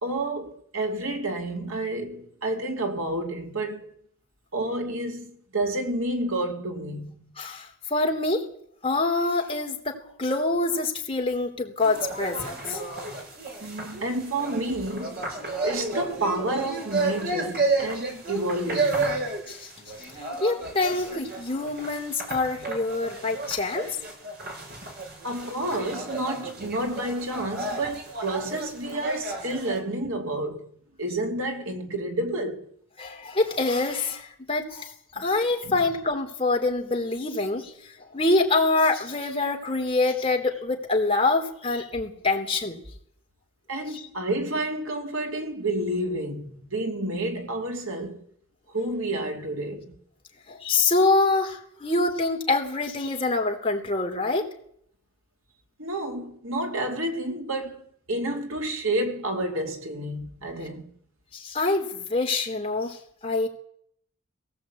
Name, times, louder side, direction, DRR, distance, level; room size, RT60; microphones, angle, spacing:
voice 1, 0.0-3.9 4.5-7.2 13.6-15.3 15.6-19.2 25.2-30.7 31.0-32.6 35.2-35.3 35.6-35.8 43.7-48.2 48.7-50.0 55.8-60.9, right 1 dB, 65° right, 2.9 m, -30 dB
voice 2, 7.4-8.5 8.8-12.8 19.5-19.7 20.4-23.9 33.0-37.7 38.1-42.8 43.9-44.0 50.5-54.5 61.3-63.5, left 3 dB, 25° left, 3.3 m, -25 dB
sound 1, 11.8-29.8, right 3 dB, 45° right, 5.6 m, -32 dB
22.0 x 17.5 x 8.5 m
head